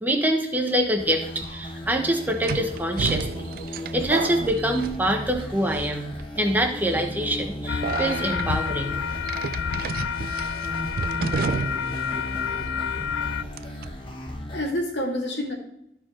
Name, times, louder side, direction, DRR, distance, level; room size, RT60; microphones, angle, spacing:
voice 1, 0.0-3.5 3.9-6.1 6.4-9.0, right 1 dB, 10° right, 3 dB, 1.0 m, -25 dB
sound 1, 1.0-14.7, equal, 30° left, 1.1 m, -35 dB
sound 2, 1.1-1.2 2.4-5.4 5.7-6.2 6.8-7.1 7.8-8.5 9.3-12.0 12.3-12.4 13.6-13.9, right 5 dB, 50° right, 0.3 m, -31 dB
sound 3, 7.7-13.4, left 7 dB, 90° left, 0.4 m, -29 dB
voice 2, 14.1-15.5, left 1 dB, 70° left, -1 dB, 2.2 m, -29 dB
13.0 x 4.7 x 4.4 m, 0.81 s
head